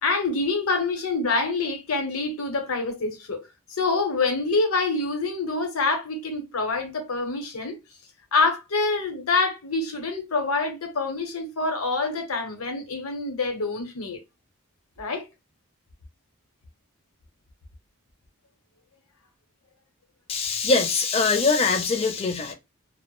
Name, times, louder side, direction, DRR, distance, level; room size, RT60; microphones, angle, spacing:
voice 1, 0.0-3.4 3.7-7.7 8.3-14.2 15.0-15.3, left 3 dB, 85° left, 0.8 m, -26 dB
voice 2, 20.3-22.5, left 4 dB, 25° left, 0.4 m, -22 dB
2.1 x 2.0 x 3.0 m
head